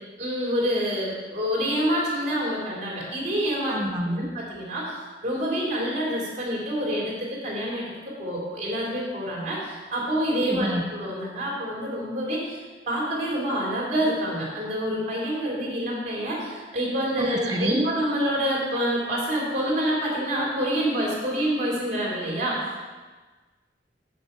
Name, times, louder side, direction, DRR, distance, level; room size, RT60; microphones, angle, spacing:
voice 1, 0.2-3.8 4.1-4.9 5.2-7.9 8.2-12.6 12.9-22.8, equal, 40° right, -4 dB, 3.0 m, -27 dB
voice 2, 3.7-4.4 10.5-10.8 17.2-17.9, equal, 25° right, 3 dB, 0.7 m, -27 dB
7.6 x 6.6 x 5.4 m, 1.3 s
head